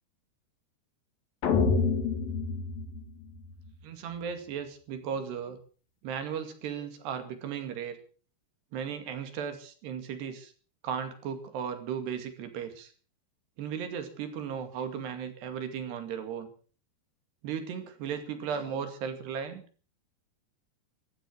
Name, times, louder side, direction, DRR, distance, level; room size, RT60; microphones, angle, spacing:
sound 1, 1.4-3.7, left 4 dB, 60° left, 3.7 m, -28 dB
voice 1, 3.8-5.6 6.0-8.0 8.7-10.5 10.8-12.9 13.6-16.5 17.4-19.6, right 7 dB, 75° right, 8 dB, 4.4 m, -36 dB
16.5 x 13.5 x 6.4 m, 0.41 s
omnidirectional pair, 4.9 m